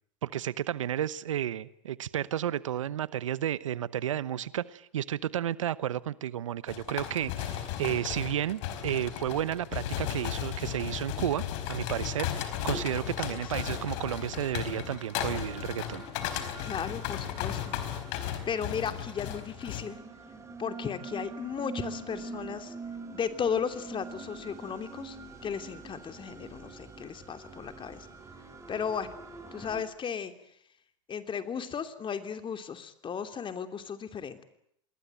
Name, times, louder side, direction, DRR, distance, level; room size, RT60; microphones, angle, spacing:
voice 1, 0.2-11.4 11.7-16.0, right 11 dB, 85° right, 1.0 m, -32 dB
sound 1, 6.7-19.8, left 10 dB, 70° left, 4.5 m, -35 dB
voice 2, 13.0-13.4 16.6-17.8 18.5-20.0 20.6-22.7 23.1-25.2 25.4-28.1 28.7-29.1 29.5-30.3 31.1-34.4, left 7 dB, 30° left, 3.0 m, -35 dB
sound 2, 13.5-29.8, right 4 dB, 20° right, 7.0 m, -45 dB
27.0 x 21.0 x 9.1 m
hypercardioid pair, 90°, 16 cm